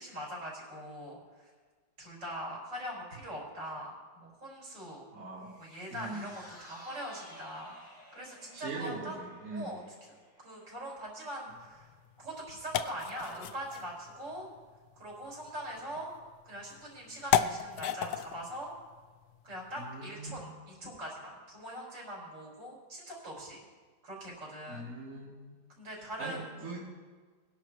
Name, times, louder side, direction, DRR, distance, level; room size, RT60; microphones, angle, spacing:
voice 1, 0.0-1.5 2.0-5.0 5.6-9.2 9.5-9.8 10.4-11.9 12.2-14.5 14.9-16.1 16.4-18.7 19.4-23.6 24.0-24.9 25.8-26.7, equal, 75° right, -4 dB, 5.6 m, -42 dB
voice 2, 5.1-5.5 5.9-6.3 8.5-9.7 19.8-20.5 24.7-25.6 26.0-26.9, right 2 dB, 45° right, -10 dB, 3.9 m, -41 dB
sound 1, 5.4-11.8 12.2-12.3, equal, 25° left, 5.2 m, -55 dB
sound 2, 11.5-20.1, left 10 dB, 70° left, 1.1 m, -36 dB
21.5 x 11.0 x 3.2 m, 1.5 s
omnidirectional pair, 2.0 m